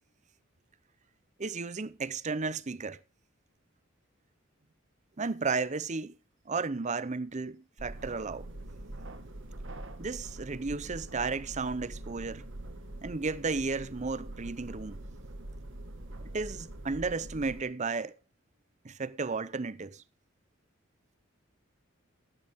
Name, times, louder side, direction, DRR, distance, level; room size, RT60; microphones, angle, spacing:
voice 1, 1.4-3.0 5.2-6.1 6.5-8.5 10.0-12.4 13.0-15.0 16.2-18.1 18.8-20.0, right 4 dB, 35° right, 0.7 m, -33 dB
sound 1, 7.8-17.6, right 1 dB, 65° right, 1.8 m, -44 dB
13.5 x 12.0 x 3.6 m
head